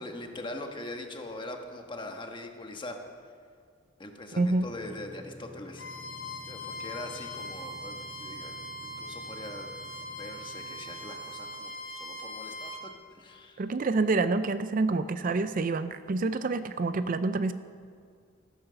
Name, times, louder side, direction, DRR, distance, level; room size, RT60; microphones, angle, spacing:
voice 1, 0.0-3.0 4.0-5.8 6.5-8.6 8.8-9.7 10.0-11.7 12.0-12.9 13.2-13.6, left 1 dB, 25° left, 4 dB, 1.3 m, -42 dB
sound 1, 4.4-11.6, equal, 10° left, 3.7 m, -51 dB
voice 2, 4.4-4.7 13.6-17.5, right 3 dB, 45° right, 12 dB, 0.4 m, -27 dB
Bowed string instrument, 5.7-12.8, left 1 dB, 90° left, 2.1 m, -41 dB
16.5 x 9.4 x 6.8 m, 2.1 s
head